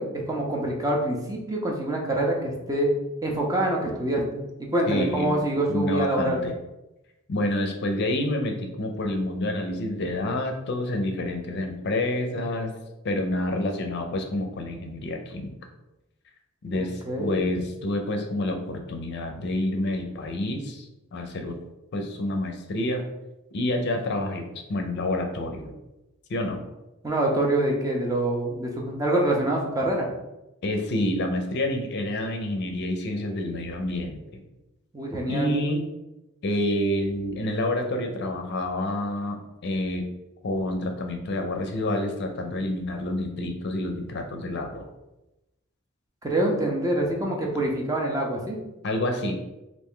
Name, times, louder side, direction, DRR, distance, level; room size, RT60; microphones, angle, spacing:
voice 1, 0.0-2.9 3.2-6.4 16.7-17.6 27.0-30.1 34.9-35.5 46.2-48.6, right 1 dB, 15° right, -1 dB, 0.5 m, -26 dB
voice 2, 4.9-5.3 5.7-6.5 7.3-12.7 13.0-15.5 16.6-21.6 21.9-23.0 23.5-25.7 26.3-26.6 30.6-34.4 35.3-35.9 36.4-40.0 40.4-44.9 48.8-49.4, left 1 dB, 55° left, 4 dB, 0.5 m, -28 dB
3.2 x 2.5 x 3.7 m, 0.97 s
head